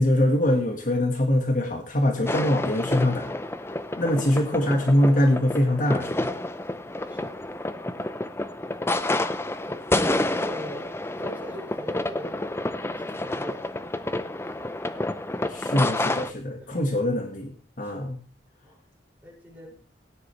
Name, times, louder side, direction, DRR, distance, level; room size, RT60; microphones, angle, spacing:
voice 1, 0.0-3.3 4.0-6.3 15.5-18.2, left 1 dB, 45° left, 3 dB, 1.7 m, -23 dB
sound 1, 2.3-16.3, left 1 dB, 15° left, 0.6 m, -29 dB
voice 2, 7.1-7.4 8.7-8.9 9.6-9.9 10.3-10.9 11.2-12.5 13.0-13.7 16.6-16.8 17.8-18.1 18.6-18.8 19.2-19.8, equal, 10° right, -4 dB, 6.1 m, -41 dB
17.5 x 10.0 x 3.3 m, 0.38 s
head